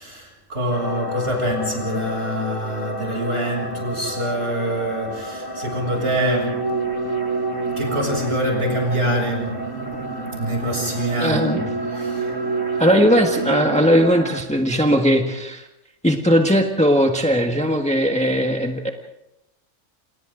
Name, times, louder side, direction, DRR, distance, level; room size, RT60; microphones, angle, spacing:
voice 1, 0.0-6.7 7.7-9.6 10.4-11.6 11.9-12.3, equal, 55° right, 1 dB, 7.7 m, -25 dB
sound 1, 0.7-14.4, left 1 dB, 45° left, 3.2 m, -32 dB
sound 2, 6.0-13.9, right 4 dB, 90° right, 1.6 m, -28 dB
voice 2, 11.2-11.6 12.8-15.7 16.0-18.9, equal, 5° left, 3 dB, 1.5 m, -18 dB
28.5 x 28.5 x 3.9 m, 0.90 s
omnidirectional pair, 1.3 m